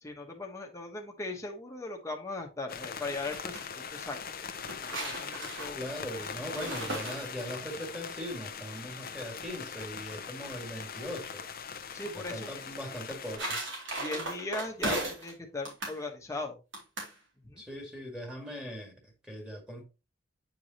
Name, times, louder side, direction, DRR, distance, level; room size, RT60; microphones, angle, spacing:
voice 1, 0.0-3.6 3.9-4.2 4.8-5.8 11.9-12.6 14.0-16.6 17.4-17.6, left 2 dB, 15° left, 1.2 m, -38 dB
sound 1, 2.7-13.4, left 6 dB, 50° left, 0.7 m, -41 dB
sound 2, 3.0-3.6 4.4-7.7 12.9-15.3 15.6-16.0 16.7-17.1, right 1 dB, 85° right, 3.0 m, -37 dB
voice 2, 5.7-11.4 12.1-13.6 17.6-19.8, equal, 5° right, 2.0 m, -40 dB
8.6 x 4.8 x 2.9 m
head